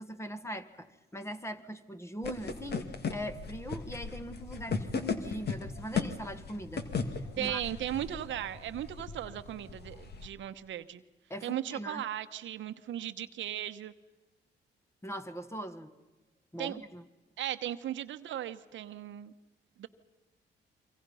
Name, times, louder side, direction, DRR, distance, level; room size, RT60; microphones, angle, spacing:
voice 1, 0.0-6.9 7.3-7.6 11.3-12.0 15.0-15.9 16.5-17.0, equal, 15° left, 10 dB, 1.7 m, -41 dB
sound 1, 2.2-10.3, left 5 dB, 55° left, 2.2 m, -37 dB
voice 2, 7.4-11.0 11.4-13.9 16.6-16.8 17.4-19.3 19.8-19.9, right 11 dB, 70° right, 10 dB, 1.1 m, -37 dB
27.5 x 24.5 x 5.6 m, 1.1 s
cardioid pair, 90°, 20 cm